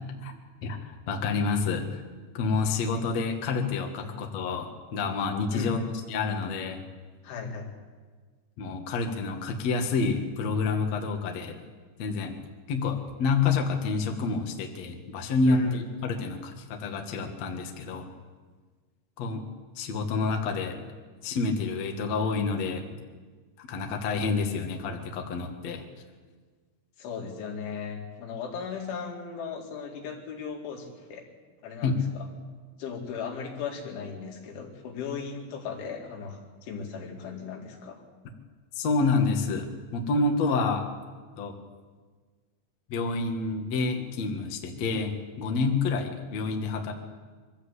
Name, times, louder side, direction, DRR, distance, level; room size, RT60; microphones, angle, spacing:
voice 1, 0.6-1.9 2.3-5.8 6.1-6.8 8.6-11.5 12.0-12.4 12.7-18.1 19.2-19.4 19.8-20.8 21.2-22.8 23.6-25.8 31.8-32.0 38.8-40.8 41.4-41.5 42.9-46.9, left 4 dB, 55° left, 3 dB, 2.0 m, -28 dB
voice 2, 5.5-6.0 7.2-7.7 15.4-15.9 27.0-31.2 31.6-32.3 32.8-38.0 44.8-44.9, left 5 dB, 75° left, 1 dB, 4.7 m, -37 dB
24.0 x 14.0 x 8.2 m, 1.4 s
omnidirectional pair, 5.6 m